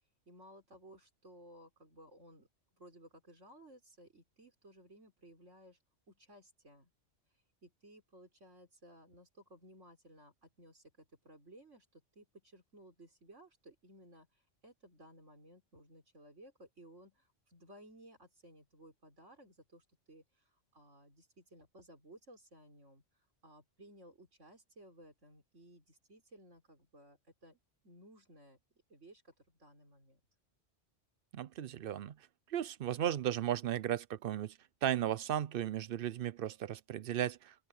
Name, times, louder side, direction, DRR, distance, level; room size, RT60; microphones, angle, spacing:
voice 1, 0.3-5.8 6.1-6.9 7.6-23.0 23.4-28.6 28.9-30.2, right 1 dB, 80° right, 5.3 m, -59 dB
voice 2, 31.3-32.2 32.5-37.5, right 11 dB, 60° right, 0.7 m, -35 dB
open air
omnidirectional pair, 1.2 m